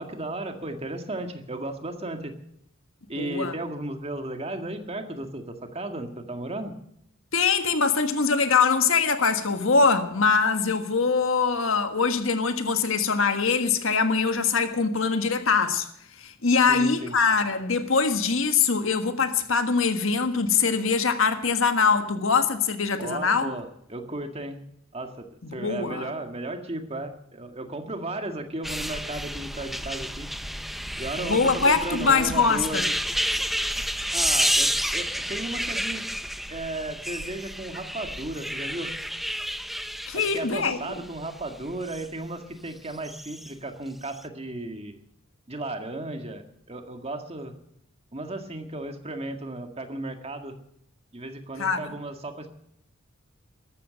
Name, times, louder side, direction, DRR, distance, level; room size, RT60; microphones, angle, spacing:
voice 1, 0.0-2.3 3.1-6.7 16.7-17.2 23.0-24.6 24.9-30.3 31.0-32.8 34.1-36.1 36.5-39.0 40.1-45.0 45.5-47.5 48.1-50.5 51.1-52.5, right 2 dB, 30° right, 1.9 m, -35 dB
voice 2, 3.2-3.5 7.3-15.9 16.2-23.5 25.5-26.1 31.2-32.9 40.1-40.8 51.6-51.8, left 5 dB, 70° left, 1.5 m, -23 dB
sound 1, 28.6-42.1 42.9-43.5 44.0-44.2, equal, ahead, 0.6 m, -30 dB
14.0 x 12.5 x 7.7 m
head